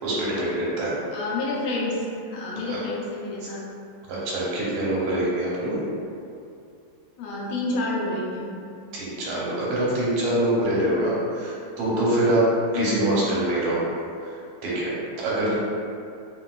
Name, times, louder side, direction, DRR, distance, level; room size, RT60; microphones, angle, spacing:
voice 1, 0.0-0.9 2.7-2.8 4.1-5.8 8.9-12.4 12.7-13.8 14.6-15.5, right 1 dB, 90° right, -6 dB, 1.7 m, -25 dB
voice 2, 1.1-3.6 7.2-8.5 12.7-13.1 15.4-15.5, left 2 dB, 80° left, -4 dB, 1.4 m, -29 dB
3.8 x 2.2 x 2.3 m, 2.5 s
omnidirectional pair, 2.3 m